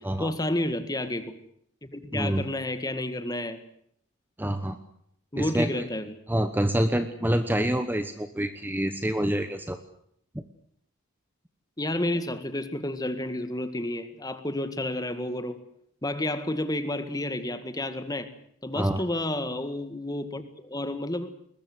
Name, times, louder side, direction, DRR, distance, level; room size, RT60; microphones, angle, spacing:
voice 1, 0.0-1.4 1.8-3.6 5.3-6.1 11.8-15.6 16.0-18.3 18.6-21.3, left 1 dB, 20° left, 10 dB, 1.8 m, -30 dB
voice 2, 2.1-2.5 4.4-4.8 5.4-5.8 6.3-9.8 10.3-10.4 18.7-19.0, right 1 dB, 10° right, 9 dB, 1.1 m, -27 dB
21.0 x 21.0 x 8.0 m, 0.69 s
head